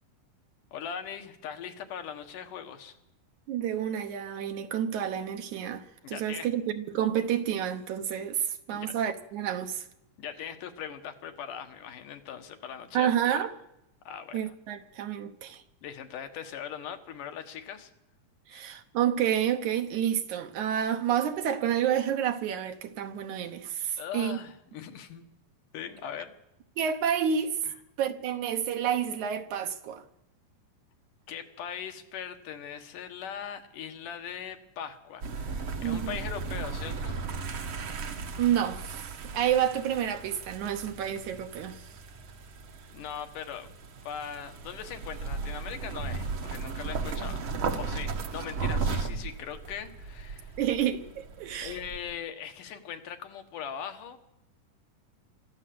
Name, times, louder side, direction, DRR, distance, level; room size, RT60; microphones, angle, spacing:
voice 1, 0.7-3.0 6.0-6.5 8.7-9.0 10.2-13.3 14.0-14.5 15.8-17.9 18.5-18.6 24.0-25.2 25.7-26.3 27.6-27.7 31.3-37.2 42.9-43.7 44.0-47.4 47.8-50.6 51.6-54.2, left 8 dB, 75° left, 3.1 m, -40 dB
voice 2, 3.5-9.9 12.9-13.5 14.3-15.6 18.5-24.4 26.8-27.6 28.0-30.0 35.8-36.2 38.4-41.8 50.6-51.8, right 9 dB, 70° right, 2.4 m, -29 dB
sound 1, 35.2-52.2, right 4 dB, 55° right, 1.6 m, -36 dB
24.5 x 13.5 x 7.8 m
omnidirectional pair, 3.7 m